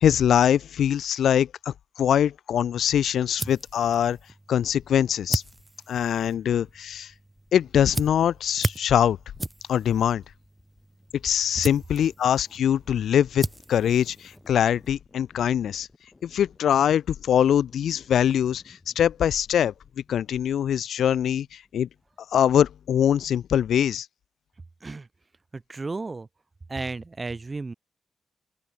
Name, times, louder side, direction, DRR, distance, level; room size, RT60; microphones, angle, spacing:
voice 1, 0.0-4.2 4.5-5.4 5.9-7.1 7.5-9.2 9.7-10.2 11.2-15.9 16.2-19.7 20.1-21.9 22.3-24.1, left 9 dB, 85° left, 0.3 m, -23 dB
sound 1, 2.8-14.9, right 2 dB, 20° right, 1.2 m, -37 dB
sound 2, 6.6-23.6, left 3 dB, 30° left, 6.3 m, -60 dB
voice 2, 25.5-26.3 26.7-27.7, right 3 dB, 35° right, 1.3 m, -33 dB
open air
cardioid pair, 55°, 0 cm